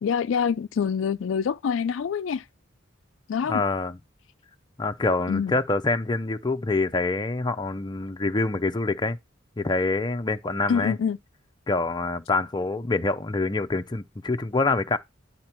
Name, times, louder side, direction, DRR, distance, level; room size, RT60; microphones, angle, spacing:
voice 1, 0.0-2.4 3.3-3.6 5.3-5.6 10.7-11.2, left 6 dB, 70° left, 0.4 m, -25 dB
voice 2, 3.5-4.0 4.8-9.2 9.6-11.0 11.7-15.0, left 3 dB, 20° left, 0.6 m, -26 dB
10.5 x 4.3 x 4.4 m
head